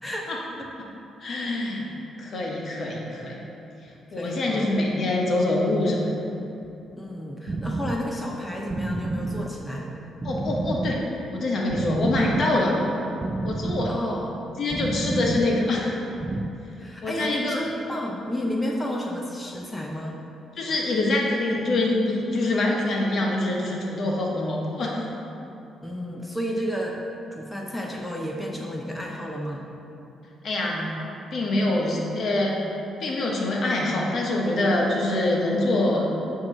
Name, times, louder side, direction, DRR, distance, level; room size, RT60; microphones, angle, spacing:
voice 1, 0.0-0.7 4.1-4.7 7.0-9.9 13.9-14.4 16.8-20.2 25.8-27.0 27.3-29.7, equal, 10° left, -1 dB, 0.6 m, -32 dB
voice 2, 1.2-1.9 2.2-3.4 4.1-6.0 10.2-11.0 11.3-12.8 13.4-13.9 14.6-16.0 17.0-17.6 20.6-25.0 30.4-30.9 31.3-32.6 33.0-36.1, left 2 dB, 55° left, -2 dB, 1.3 m, -25 dB
sound 1, 7.5-16.5, right 2 dB, 30° right, 0.3 m, -30 dB
8.6 x 3.1 x 6.0 m, 2.8 s
cardioid pair, 90°, 0 cm